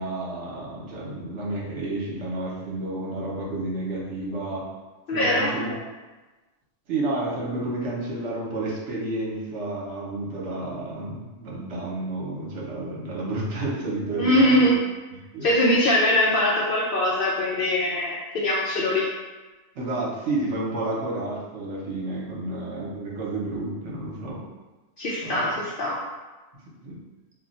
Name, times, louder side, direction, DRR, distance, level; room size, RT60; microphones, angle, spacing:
voice 1, 0.0-4.7 5.1-5.8 6.9-14.7 15.1-15.5 19.7-24.4 25.2-25.6 26.8-27.0, right 2 dB, 70° right, -4 dB, 1.0 m, -30 dB
voice 2, 5.1-5.6 14.2-14.8 15.4-19.1 25.0-26.0, left 1 dB, 60° left, -5 dB, 0.6 m, -22 dB
2.4 x 2.2 x 4.0 m, 1.2 s
omnidirectional pair, 1.3 m